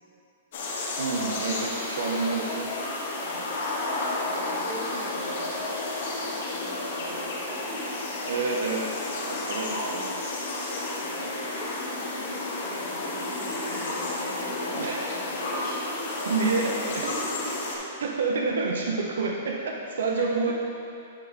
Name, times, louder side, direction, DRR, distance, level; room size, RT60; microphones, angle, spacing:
sound 1, 0.5-17.8, left 2 dB, 50° left, 1.2 m, -31 dB
voice 1, 1.0-2.7 8.3-9.0 9.2-10.2 14.7-15.0 16.3-17.0 18.0-20.5, right 4 dB, 90° right, 0 dB, 0.7 m, -28 dB
voice 2, 3.2-3.5 4.3-7.9 11.0-17.5 18.7-18.8 20.2-20.5, right 1 dB, 25° right, -6 dB, 1.2 m, -42 dB
9.0 x 4.6 x 4.1 m, 2.6 s
hypercardioid pair, 170°, 0 cm